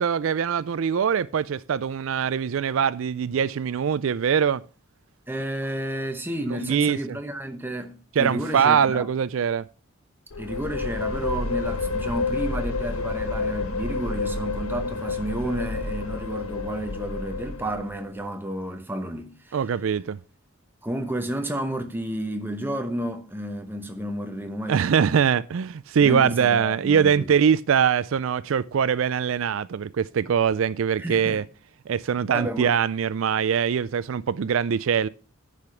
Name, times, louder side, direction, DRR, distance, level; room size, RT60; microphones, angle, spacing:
voice 1, 0.0-4.6 6.5-7.2 8.2-9.6 19.5-20.2 24.7-31.4 31.9-35.1, right 7 dB, 70° right, 0.4 m, -23 dB
voice 2, 5.3-9.1 10.4-19.6 20.8-24.9 26.0-27.3 31.0-31.4 32.3-32.7, right 1 dB, 10° right, 0.9 m, -31 dB
sound 1, 10.3-18.2, left 3 dB, 90° left, 1.1 m, -29 dB
10.5 x 5.0 x 5.6 m
head